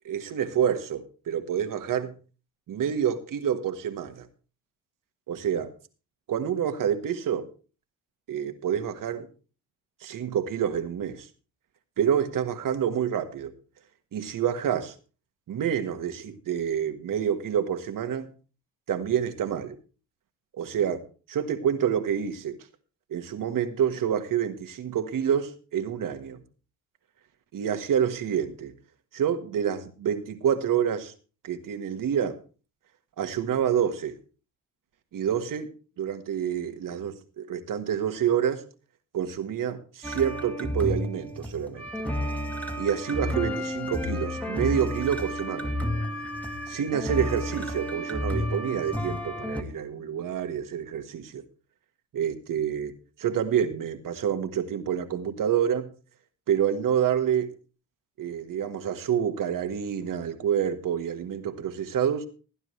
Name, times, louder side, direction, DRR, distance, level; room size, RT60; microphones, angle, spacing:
voice 1, 0.1-2.1 2.7-4.3 5.3-5.7 6.3-7.5 8.3-9.3 10.0-11.3 12.0-13.5 14.1-14.9 15.5-18.3 18.9-19.8 20.6-22.6 23.1-26.4 27.5-28.7 29.1-31.1 31.4-32.4 33.2-34.1 35.1-35.7 36.0-38.6 39.1-41.9 42.8-45.7 46.7-51.4 52.1-52.9 53.2-55.9 56.5-57.5 58.2-62.3, right 8 dB, 65° right, 8 dB, 1.6 m, -28 dB
sound 1, 40.0-49.6, left 1 dB, 5° left, 2.0 m, -31 dB
18.5 x 9.9 x 3.2 m, 0.35 s
supercardioid pair, 75°, 36 cm